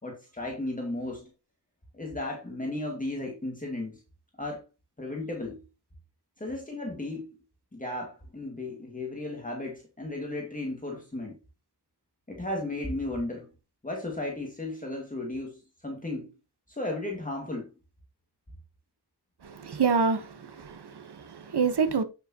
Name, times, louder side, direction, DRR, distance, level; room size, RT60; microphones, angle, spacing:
voice 1, 0.0-1.3 1.9-4.0 4.4-4.6 5.0-5.6 6.4-7.3 7.7-11.4 12.3-13.5 13.8-16.3 16.7-17.7, left 2 dB, 20° left, 2.1 m, -35 dB
voice 2, 19.4-22.0, right 5 dB, 80° right, 1.3 m, -27 dB
8.5 x 7.9 x 2.9 m
wide cardioid pair, 100°, 39 cm